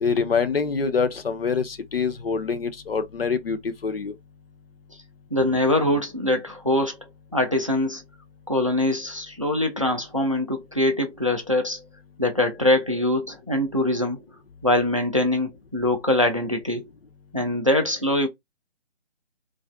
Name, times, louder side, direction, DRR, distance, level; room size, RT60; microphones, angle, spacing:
voice 1, 0.0-4.1, left 5 dB, 55° left, 0.5 m, -25 dB
voice 2, 5.3-7.0 7.3-8.0 8.5-11.8 12.2-14.2 14.6-16.9 17.3-18.3, left 1 dB, 30° right, 0.4 m, -23 dB
2.4 x 2.4 x 2.2 m
figure-of-eight pair, 150°, 35 cm